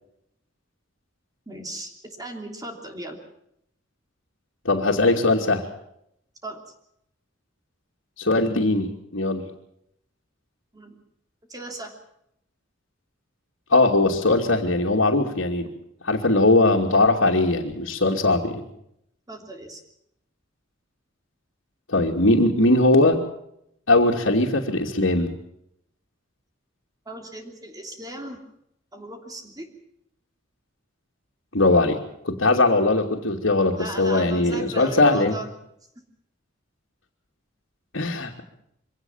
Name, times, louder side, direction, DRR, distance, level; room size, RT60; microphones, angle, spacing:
voice 1, 1.5-3.2 6.4-6.6 10.7-11.0 11.5-11.9 19.3-19.8 27.0-28.4 28.9-29.7 33.8-35.5, right 1 dB, 20° right, 4 dB, 3.2 m, -37 dB
voice 2, 4.6-5.7 8.2-9.4 13.7-15.7 16.0-18.6 21.9-23.2 23.9-25.3 31.5-32.0 32.2-35.4 37.9-38.4, left 2 dB, 80° left, -3 dB, 2.8 m, -20 dB
24.5 x 17.5 x 7.4 m, 0.75 s
head